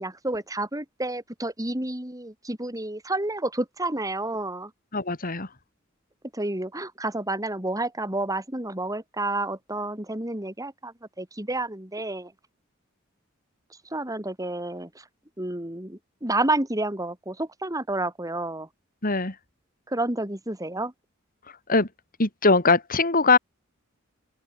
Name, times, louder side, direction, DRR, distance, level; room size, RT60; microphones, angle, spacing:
voice 1, 0.0-4.7 6.3-12.3 13.9-14.9 15.4-18.7 19.9-20.9, right 2 dB, 15° right, 4.2 m, -30 dB
voice 2, 4.9-5.5 19.0-19.3 21.7-21.9 22.2-23.4, left 3 dB, 45° left, 3.2 m, -21 dB
open air
head